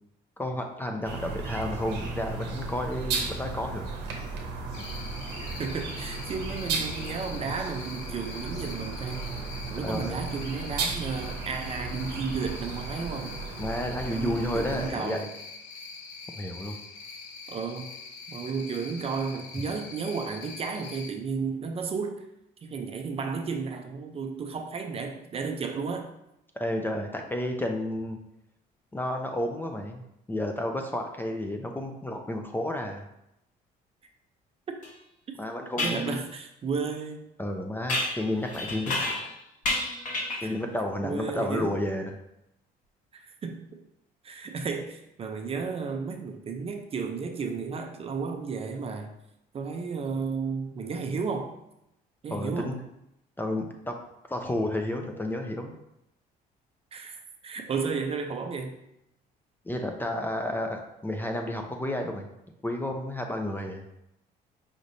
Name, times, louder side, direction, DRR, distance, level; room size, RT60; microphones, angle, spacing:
voice 1, 0.4-3.9 9.8-10.3 13.6-15.2 16.4-16.8 26.6-28.2 28.9-30.0 30.3-33.1 35.4-36.2 37.4-38.9 40.4-42.2 52.3-52.8 53.4-54.0 54.3-55.8 59.7-62.3 62.6-63.8, left 1 dB, 10° left, 3 dB, 0.5 m, -31 dB
sound 1, 1.0-14.9, right 4 dB, 90° right, 0.8 m, -35 dB
Cricket, 4.7-21.1, left 4 dB, 85° left, 0.7 m, -44 dB
voice 2, 5.4-9.3 9.7-13.4 14.1-15.3 17.5-17.9 18.3-22.3 22.6-26.1 34.7-34.8 35.8-37.2 40.4-40.5 41.0-41.7 43.1-43.8 44.2-49.2 49.5-51.5 52.2-52.8 56.9-58.8, right 5 dB, 35° right, 5 dB, 0.5 m, -33 dB
sound 2, 34.8-34.9 35.8-36.0 37.9-39.3 39.6-40.5, left 2 dB, 50° left, 1.0 m, -30 dB
5.0 x 3.1 x 2.7 m, 0.83 s
cardioid pair, 110°, 17 cm